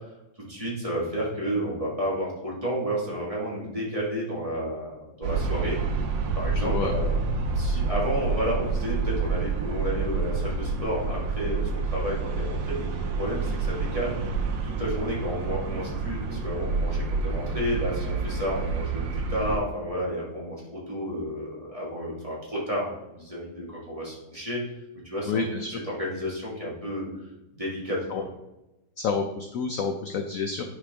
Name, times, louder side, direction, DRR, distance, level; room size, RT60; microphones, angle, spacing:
voice 1, 0.4-5.8 6.3-7.2 7.5-14.2 14.6-24.6 25.0-25.4 25.7-27.1 27.5-28.3, equal, 20° right, -5 dB, 1.7 m, -31 dB
sound 1, 5.2-19.6, right 4 dB, 90° right, 1.5 m, -28 dB
voice 2, 6.5-6.9 25.3-25.7 28.1-28.2 29.0-30.6, left 5 dB, 70° left, 5 dB, 0.8 m, -29 dB
8.4 x 4.9 x 3.5 m, 0.97 s
omnidirectional pair, 2.0 m